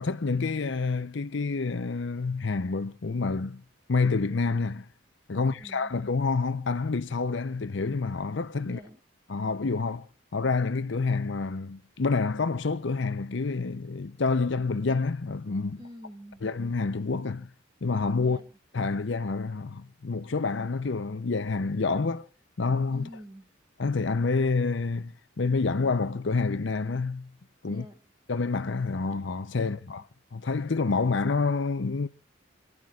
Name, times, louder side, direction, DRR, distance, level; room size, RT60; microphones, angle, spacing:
voice 1, 0.0-3.6 3.9-4.9 5.3-8.8 9.3-10.1 10.3-15.8 16.4-17.5 17.8-18.4 18.7-22.3 22.6-23.1 23.8-27.3 27.6-27.8 28.3-30.0 30.3-32.1, left 4 dB, 60° left, 0.6 m, -28 dB
voice 2, 5.3-5.9 8.6-9.0 15.8-16.4 18.2-18.6 22.9-23.5 27.6-28.0, equal, 20° right, 2.0 m, -47 dB
29.5 x 11.0 x 2.4 m
head